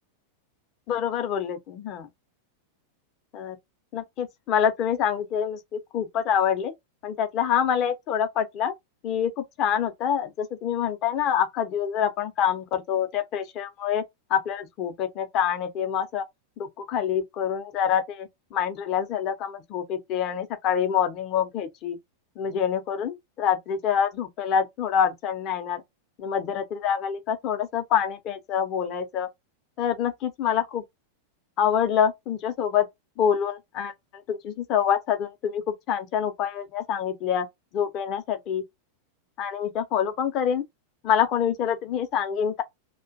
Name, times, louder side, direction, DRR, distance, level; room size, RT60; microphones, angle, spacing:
voice 1, 0.9-2.1 3.3-3.6 3.9-6.7 7.0-8.7 9.0-14.0 14.3-16.2 16.6-22.0 22.4-25.8 26.2-29.3 29.8-30.8 31.6-32.9 33.2-37.5 37.7-38.6 39.4-40.6 41.0-42.6, left 8 dB, 35° left, 0.6 m, -26 dB
2.4 x 2.2 x 2.6 m
figure-of-eight pair, 90°, 0 cm